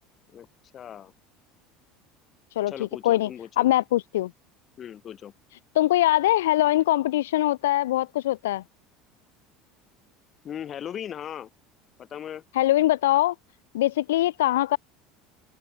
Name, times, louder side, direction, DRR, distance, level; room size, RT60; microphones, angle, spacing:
voice 1, 0.7-1.1 2.6-3.7 4.8-5.3 10.4-11.5 12.0-12.4, left 9 dB, 40° left, 7.7 m, -38 dB
voice 2, 2.6-3.3 3.6-4.3 5.7-8.6 12.5-13.3 13.7-14.8, left 15 dB, 75° left, 0.5 m, -22 dB
hypercardioid pair, 70°, 0 cm